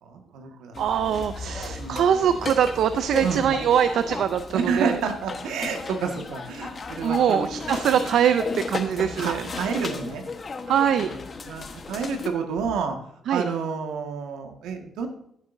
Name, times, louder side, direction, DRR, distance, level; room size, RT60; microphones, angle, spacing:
voice 1, 0.0-0.8 1.7-2.2 3.2-3.6 4.5-7.7 9.0-10.2 11.0-11.2 11.4-13.0 13.3-15.1, right 5 dB, 90° right, 4 dB, 1.7 m, -29 dB
sound 1, 0.7-12.3, left 4 dB, 40° left, 1.2 m, -35 dB
voice 2, 0.8-4.9 7.0-9.4 10.7-11.1 13.3-13.5, right 8 dB, 70° right, 11 dB, 0.5 m, -23 dB
15.5 x 7.6 x 2.7 m, 0.73 s
cardioid pair, 90°, 0 cm